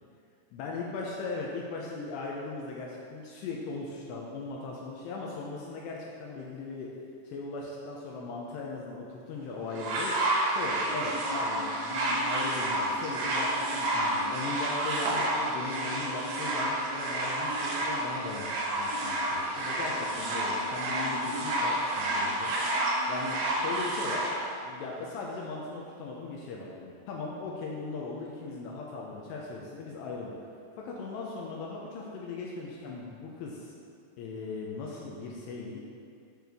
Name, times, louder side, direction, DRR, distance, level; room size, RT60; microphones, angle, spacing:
voice 1, 0.5-6.9 7.3-10.2 10.5-24.3 24.6-30.4 30.8-33.7 34.2-35.8, left 3 dB, 80° left, -3 dB, 2.5 m, -38 dB
sound 1, 9.7-24.3 25.2-25.3, right 1 dB, 85° right, 3.6 m, -30 dB
8.2 x 6.0 x 3.5 m, 2.4 s
omnidirectional pair, 5.5 m